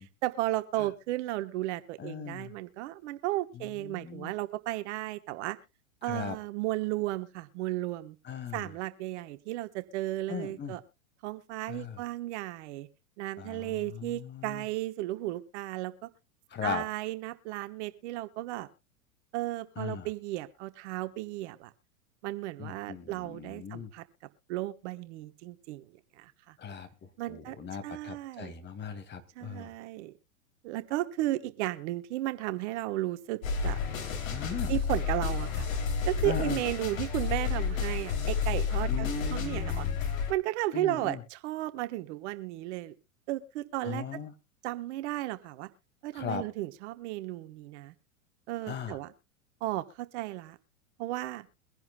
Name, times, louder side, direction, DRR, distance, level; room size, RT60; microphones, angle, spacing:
voice 1, 0.2-5.6 6.0-8.2 8.5-10.8 11.2-12.9 13.2-16.1 16.6-18.7 19.3-21.7 22.2-24.0 24.5-26.5 27.2-27.6 27.8-28.5 29.4-30.1 30.6-33.8 34.7-35.7 36.1-39.9 40.3-42.9 43.3-44.0 44.6-45.7 46.0-47.9 48.5-49.1 49.6-50.6 51.0-51.5, right 16 dB, 55° right, 11 dB, 1.2 m, -34 dB
voice 2, 2.0-2.6 3.5-4.3 6.0-6.4 8.2-8.7 10.3-10.7 11.7-12.0 13.4-14.7 16.5-16.8 19.8-20.1 22.6-23.9 26.6-29.7 34.3-34.7 36.2-36.6 38.9-40.0 40.7-41.2 43.8-44.3 46.1-46.4 48.6-49.0, left 6 dB, 25° left, 9 dB, 2.1 m, -38 dB
sound 1, 33.4-40.3, left 6 dB, 70° left, 3.1 m, -31 dB
23.5 x 10.5 x 2.3 m, 0.27 s
hypercardioid pair, 110°, 42 cm